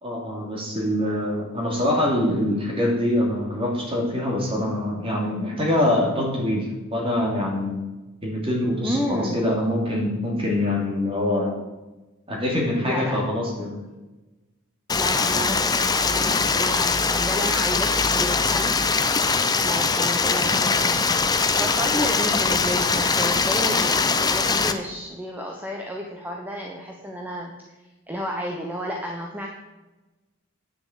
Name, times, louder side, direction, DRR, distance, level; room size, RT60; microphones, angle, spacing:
voice 1, 0.0-7.8 8.2-11.6 12.3-13.8, left 1 dB, 25° right, -1 dB, 2.8 m, -24 dB
voice 2, 8.8-9.5 12.9-13.2 14.9-18.8 19.6-27.5 28.1-29.5, equal, 10° right, 1 dB, 0.9 m, -31 dB
Stream, 14.9-24.7, left 4 dB, 20° left, 0.6 m, -22 dB
9.7 x 6.8 x 7.3 m, 1.1 s
head